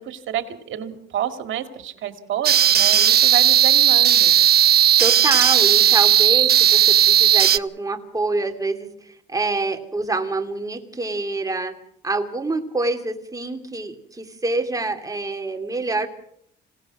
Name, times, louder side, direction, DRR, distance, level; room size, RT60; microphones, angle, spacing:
voice 1, 0.0-4.4, right 10 dB, 75° right, 8 dB, 2.2 m, -29 dB
sound 1, 2.4-7.6, right 10 dB, 55° right, 0.7 m, -15 dB
voice 2, 5.0-11.8 12.0-16.1, right 2 dB, 15° right, 5 dB, 2.7 m, -26 dB
26.5 x 17.5 x 6.0 m, 0.70 s
cardioid pair, 90°, 20 cm